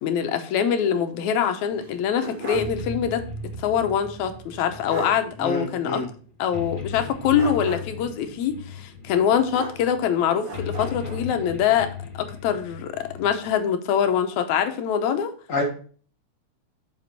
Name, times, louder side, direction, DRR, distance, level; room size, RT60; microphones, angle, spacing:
voice 1, 0.0-3.3 3.6-6.0 6.4-11.9 12.1-15.3, left 8 dB, 80° left, 8 dB, 2.1 m, -24 dB
sound 1, 1.7-13.5, left 4 dB, 30° left, 1.8 m, -37 dB
sound 2, 1.8-2.8 3.1-3.2 4.5-4.6 4.9-5.2 7.3-8.1 9.5-10.1 10.4-11.3, right 2 dB, 55° right, 2.0 m, -36 dB
voice 2, 5.4-6.1 15.5-15.6, left 2 dB, 45° left, 1 dB, 1.0 m, -27 dB
6.7 x 5.2 x 4.0 m, 0.43 s
omnidirectional pair, 3.4 m